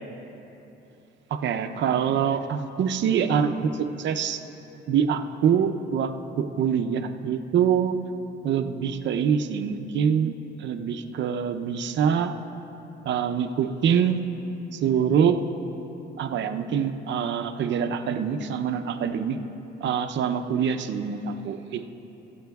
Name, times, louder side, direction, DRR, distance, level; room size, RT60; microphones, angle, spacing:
voice 1, 1.3-4.4 4.9-8.0 8.4-10.3 10.6-12.3 13.0-14.2 14.7-15.4 16.2-19.4 19.8-21.9, right 7 dB, 65° right, 7 dB, 0.6 m, -25 dB
24.5 x 8.5 x 2.3 m, 3.0 s
cardioid pair, 90°, 20 cm